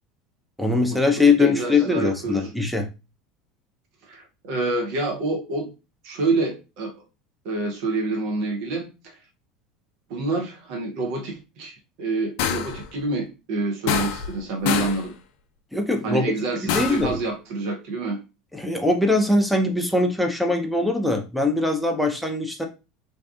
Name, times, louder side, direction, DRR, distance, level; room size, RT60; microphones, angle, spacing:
voice 1, 0.6-2.9 15.7-16.2 16.6-17.2 18.5-22.6, left 3 dB, ahead, 3 dB, 0.6 m, -21 dB
voice 2, 1.4-2.5 4.1-5.7 6.0-7.0 7.4-9.2 10.1-15.1 16.0-18.2, right 3 dB, 60° right, 1 dB, 0.6 m, -27 dB
sound 1, 12.4-12.8 13.9-14.4 14.7-15.1 16.7-17.1, left 8 dB, 60° left, 0.4 m, -25 dB
2.7 x 2.3 x 2.3 m, 0.29 s
figure-of-eight pair, 75°, 0 cm